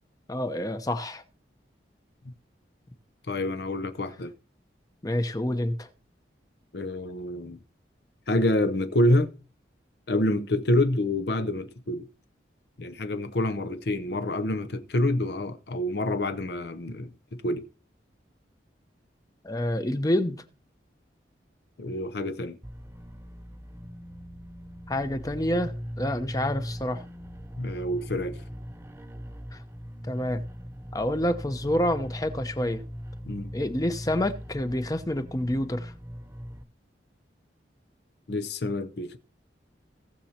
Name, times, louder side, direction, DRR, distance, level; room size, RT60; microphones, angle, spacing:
voice 1, 0.3-1.2 5.0-5.9 19.4-20.4 24.9-27.0 29.5-29.6 30.1-30.4 30.9-32.8 33.5-35.9, left 1 dB, 20° left, 0.8 m, -28 dB
voice 2, 3.3-4.3 6.7-7.6 8.3-9.3 10.1-12.1 12.8-17.7 21.8-22.6 27.6-28.4 33.2-33.5 38.3-39.2, left 1 dB, 60° left, 0.7 m, -27 dB
sound 1, 22.6-36.6, equal, 15° right, 0.6 m, -39 dB
18.0 x 7.0 x 2.9 m
head